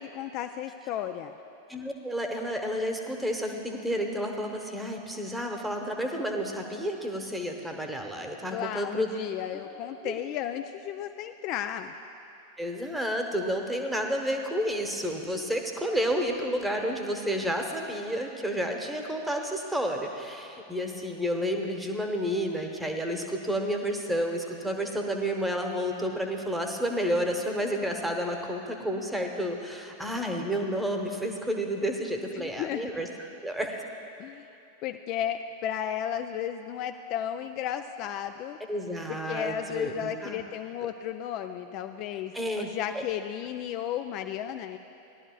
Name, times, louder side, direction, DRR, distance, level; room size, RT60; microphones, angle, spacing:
voice 1, 0.0-1.3 8.5-11.9 32.3-32.9 34.2-34.5 34.8-38.6 39.1-44.8, left 10 dB, 40° left, 7 dB, 0.3 m, -34 dB
voice 2, 1.7-9.1 10.0-10.1 12.6-33.1 33.4-33.8 38.7-40.4 42.3-42.6 42.9-43.0, equal, 5° right, 3 dB, 1.0 m, -30 dB
17.5 x 11.5 x 2.3 m, 2.9 s
figure-of-eight pair, 90°, 0 cm